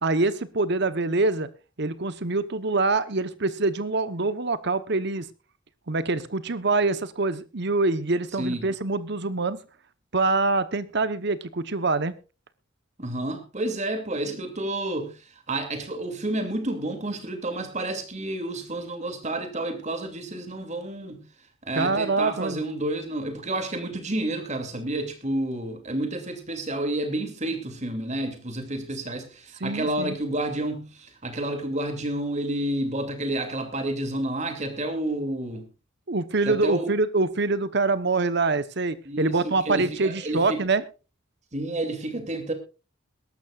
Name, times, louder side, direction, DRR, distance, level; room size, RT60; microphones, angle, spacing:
voice 1, 0.0-1.5 1.8-5.2 5.9-9.6 10.1-12.2 21.8-22.6 29.6-30.1 36.1-40.8, right 3 dB, 60° right, 1.0 m, -25 dB
voice 2, 13.0-15.1 15.5-21.2 21.7-35.6 36.4-36.9 39.1-40.6 41.5-42.5, right 1 dB, 35° right, 2.7 m, -30 dB
22.0 x 12.0 x 2.4 m
head